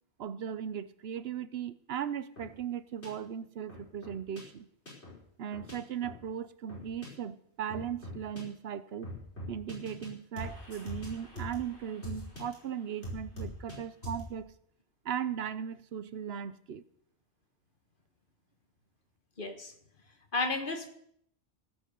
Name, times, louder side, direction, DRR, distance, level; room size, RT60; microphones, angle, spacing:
voice 1, 0.2-4.7 5.4-9.1 9.5-14.5 15.0-16.8, right 8 dB, 70° right, 15 dB, 0.9 m, -38 dB
sound 1, 2.4-2.5 3.0-3.1 3.7-4.4 4.9-5.2 5.5-5.7 6.0-6.2 6.7-7.1 7.7-8.4 9.0-10.1 10.4-12.5 13.0-13.8 14.0-14.3, equal, 75° left, 5.4 m, -42 dB
voice 2, 19.4-19.7 20.3-20.9, left 3 dB, 50° left, 6 dB, 1.7 m, -32 dB
16.5 x 8.0 x 6.8 m, 0.70 s
omnidirectional pair, 1.1 m